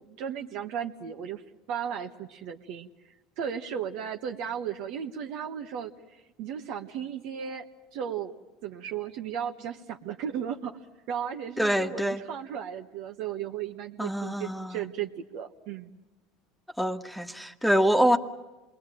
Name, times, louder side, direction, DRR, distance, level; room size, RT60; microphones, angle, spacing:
voice 1, 0.0-1.4 1.7-2.9 3.4-7.7 7.9-8.3 8.6-10.8 11.1-15.9, right 8 dB, 65° right, 3 dB, 1.3 m, -35 dB
voice 2, 11.6-12.2 14.0-14.8 16.8-18.2, equal, ahead, 7 dB, 1.5 m, -25 dB
27.5 x 21.0 x 9.1 m, 1.1 s
supercardioid pair, 95°, 0 cm